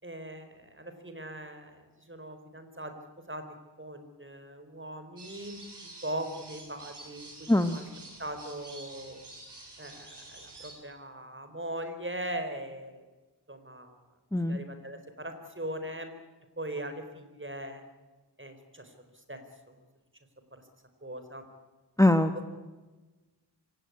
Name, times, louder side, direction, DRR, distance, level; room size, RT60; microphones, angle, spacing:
voice 1, 0.0-2.9 3.3-3.4 3.8-7.9 8.2-9.2 9.8-13.0 13.5-14.0 14.5-16.1 16.6-17.8 18.4-19.7 20.5-20.6 21.0-21.4 22.3-22.4, right 1 dB, 30° right, 8 dB, 4.4 m, -40 dB
sound 1, 5.2-10.7, right 2 dB, 70° right, 6.4 m, -48 dB
voice 2, 22.0-22.5, left 1 dB, 10° left, 9 dB, 1.1 m, -23 dB
25.5 x 18.0 x 9.6 m, 1.2 s
wide cardioid pair, 65°, 42 cm